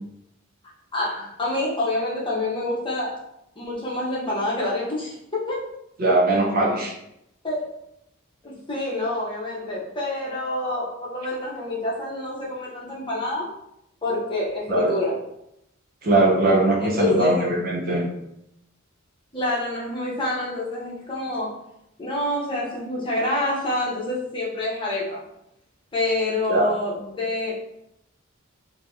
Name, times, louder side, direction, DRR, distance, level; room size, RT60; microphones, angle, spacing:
voice 1, 0.9-3.2 3.6-5.6 7.4-7.7 8.4-13.5 14.0-15.2 16.8-17.4 19.3-21.6 22.0-25.2 25.9-27.6, left 2 dB, 25° left, -5 dB, 0.8 m, -27 dB
voice 2, 6.0-6.9 14.7-14.9 16.0-18.0 26.5-26.7, right 2 dB, 45° right, 0 dB, 0.6 m, -20 dB
2.8 x 2.6 x 3.5 m, 0.81 s
head